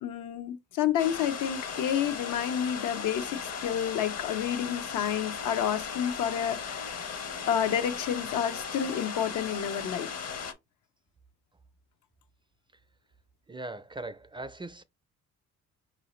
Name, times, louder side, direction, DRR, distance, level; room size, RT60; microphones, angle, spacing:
voice 1, 0.0-6.9 7.4-10.1, left 9 dB, 85° left, 0.7 m, -30 dB
sound 1, 1.0-10.5, left 6 dB, 55° left, 0.9 m, -37 dB
voice 2, 13.5-14.8, right 2 dB, 15° right, 0.4 m, -40 dB
4.8 x 2.7 x 3.1 m
cardioid pair, 90°, 30 cm